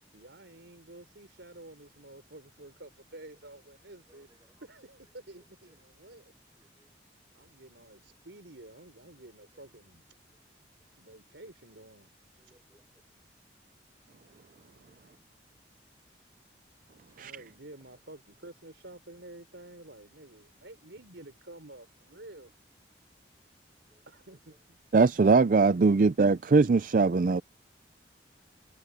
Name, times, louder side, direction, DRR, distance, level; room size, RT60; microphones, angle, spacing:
voice 1, 0.1-4.3 4.6-6.3 7.3-10.1 11.0-12.1 17.2-22.5 24.1-24.8, right 2 dB, 75° right, 3.9 m, -50 dB
voice 2, 4.1-4.6 5.4-5.8 6.6-6.9 9.5-9.6 10.8-11.0 12.4-13.2 14.3-14.4 14.9-15.0 15.9-16.0 17.0-17.2 23.9-24.1 24.5-24.6, right 1 dB, 20° right, 7.0 m, -67 dB
voice 3, 24.9-27.4, right 4 dB, 45° right, 0.4 m, -21 dB
head